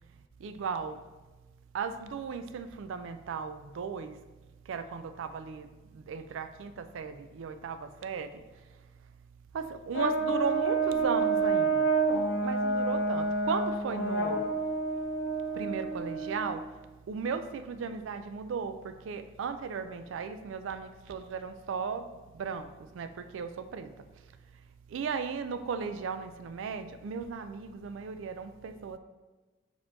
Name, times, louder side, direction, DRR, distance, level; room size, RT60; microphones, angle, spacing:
voice 1, 0.4-1.0 1.7-4.2 4.7-8.4 9.5-11.9 12.4-14.5 15.5-16.6 17.1-22.0 22.3-22.7 22.9-23.9 24.9-29.0, right 5 dB, 75° right, 10 dB, 0.3 m, -36 dB
Brass instrument, 9.9-16.7, right 3 dB, 65° left, 0.5 m, -29 dB
6.1 x 3.0 x 2.6 m, 1.2 s
head